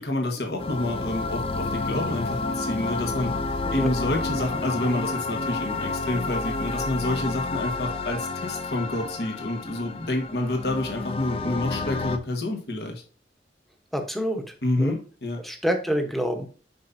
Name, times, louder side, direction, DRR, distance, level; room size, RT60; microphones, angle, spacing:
voice 1, 0.0-3.3 3.7-13.0 14.6-15.4, left 2 dB, 70° left, 3 dB, 1.3 m, -28 dB
sound 1, 0.6-12.2, left 3 dB, 35° left, 0.5 m, -30 dB
voice 2, 13.9-15.0 15.4-16.5, equal, ahead, 4 dB, 0.9 m, -27 dB
7.5 x 5.7 x 2.6 m, 0.39 s
head